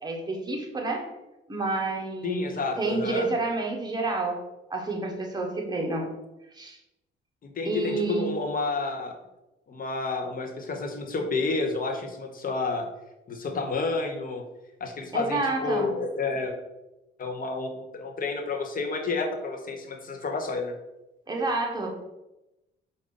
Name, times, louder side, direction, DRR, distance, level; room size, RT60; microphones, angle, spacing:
voice 1, 0.0-1.1 1.5-4.4 4.7-6.1 6.5-6.8 7.6-8.3 15.1-16.0 21.3-22.0, right 3 dB, 20° right, 0 dB, 1.0 m, -29 dB
voice 2, 2.2-3.3 7.4-9.1 9.7-12.9 13.3-14.4 14.8-16.5 17.2-20.8, left 3 dB, 45° left, 4 dB, 0.8 m, -30 dB
4.9 x 2.6 x 3.7 m, 0.96 s
cardioid pair, 90°, 20 cm